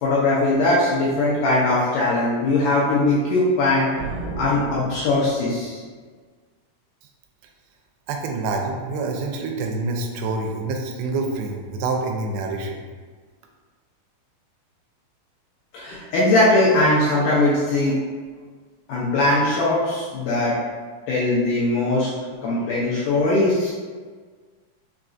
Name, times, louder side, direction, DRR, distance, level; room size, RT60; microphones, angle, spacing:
voice 1, 0.0-3.9 4.4-5.8 15.7-18.0 18.9-20.6 21.1-22.1 22.4-23.7, left 2 dB, 80° left, -6 dB, 1.9 m, -20 dB
sound 1, 4.0-5.7, right 2 dB, 70° right, 1.7 m, -33 dB
voice 2, 8.1-12.8, right 3 dB, 85° right, 2 dB, 2.4 m, -27 dB
5.7 x 2.3 x 2.5 m, 1.5 s
omnidirectional pair, 4.3 m